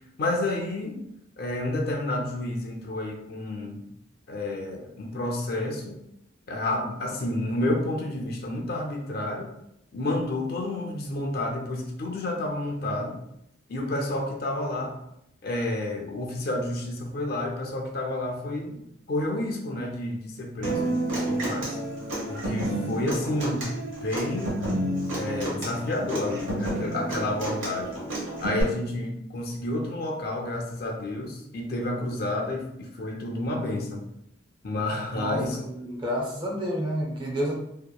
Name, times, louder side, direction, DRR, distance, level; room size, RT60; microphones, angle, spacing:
voice 1, 0.2-1.0 1.4-3.9 4.3-6.0 6.5-9.5 9.9-13.2 13.7-14.9 15.4-18.8 19.1-21.8 22.3-23.7 24.0-24.6 25.1-28.0 28.4-34.0 34.6-35.6, left 1 dB, 50° left, 0 dB, 0.4 m, -30 dB
Human voice / Acoustic guitar, 20.6-28.6, right 1 dB, 85° right, 1.0 m, -30 dB
voice 2, 35.1-37.5, equal, 25° right, -2 dB, 0.5 m, -29 dB
2.8 x 2.1 x 2.2 m, 0.80 s
head